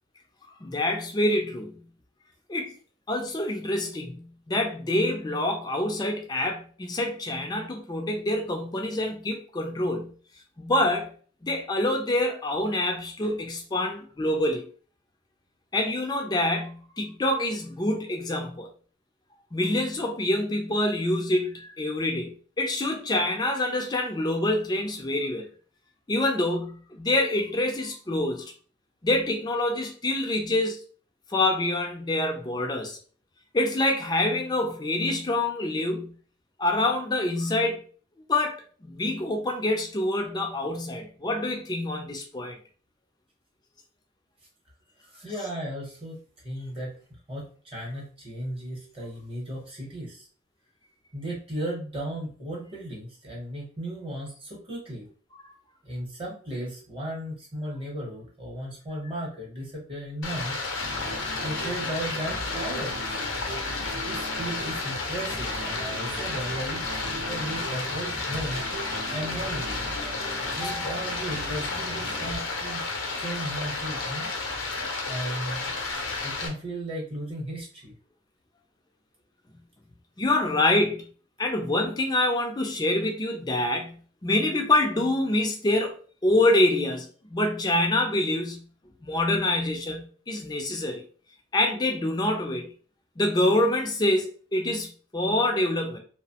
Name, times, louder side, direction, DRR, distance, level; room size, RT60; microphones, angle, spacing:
voice 1, 0.6-1.8 2.5-2.7 3.1-10.1 10.6-11.1 11.4-14.7 15.7-18.7 19.5-25.5 26.1-28.5 29.0-30.8 31.3-33.0 33.5-36.1 36.6-37.8 38.3-42.6 55.4-55.5 69.0-69.1 70.0-71.0 80.2-81.0 81.4-85.9 86.2-88.6 89.0-91.0 91.5-92.7 93.2-96.0, left 1 dB, 20° left, 0.4 m, -26 dB
voice 2, 45.1-47.0 47.3-50.3 51.1-55.1 55.8-60.6 61.4-63.0 63.9-66.8 67.1-68.6 69.1-69.8 70.5-72.9 73.2-74.3 75.1-75.9 76.2-77.9, right 1 dB, 30° right, 0.8 m, -35 dB
Stream, 60.2-76.5, left 3 dB, 80° left, 0.6 m, -32 dB
sound 1, 60.8-72.4, right 1 dB, 60° right, 0.6 m, -39 dB
2.8 x 2.0 x 2.8 m
head